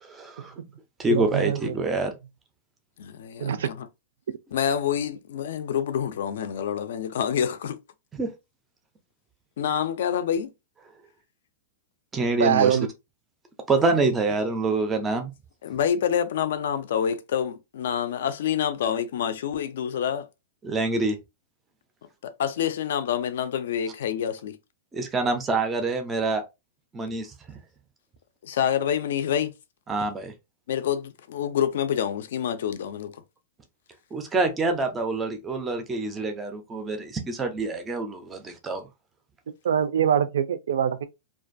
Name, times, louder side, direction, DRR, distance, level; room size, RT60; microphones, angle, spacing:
voice 1, 0.0-0.5 1.0-2.1 8.1-8.3 12.1-12.7 13.7-15.3 20.6-21.2 24.9-26.4 26.9-27.6 29.9-30.3 34.1-38.9, right 3 dB, 10° right, 0.4 m, -26 dB
voice 2, 1.1-1.8 3.4-3.7 12.4-12.9 39.6-41.0, right 8 dB, 80° right, 0.3 m, -23 dB
voice 3, 3.0-3.5 4.5-7.8 9.6-10.5 13.8-13.9 15.6-20.3 22.2-24.6 28.4-29.5 30.7-33.2, left 9 dB, 60° left, 0.4 m, -27 dB
2.4 x 2.2 x 2.5 m
supercardioid pair, 180°, 0 cm